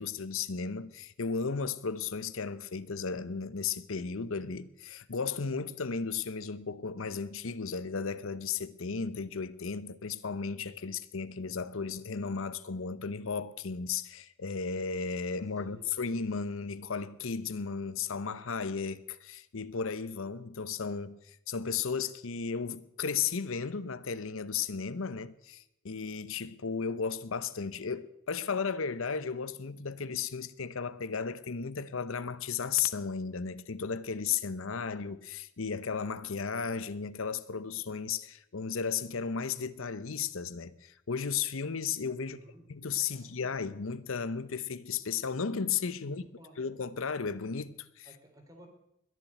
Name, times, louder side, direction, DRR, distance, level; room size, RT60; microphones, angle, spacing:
voice 1, 0.0-42.4 42.7-46.2 46.6-48.1, left 5 dB, 70° left, 0.8 m, -34 dB
voice 2, 15.6-16.1 42.2-42.6 43.1-43.5 46.0-46.6 48.0-48.7, equal, 15° right, 3.3 m, -55 dB
21.5 x 7.3 x 9.2 m
head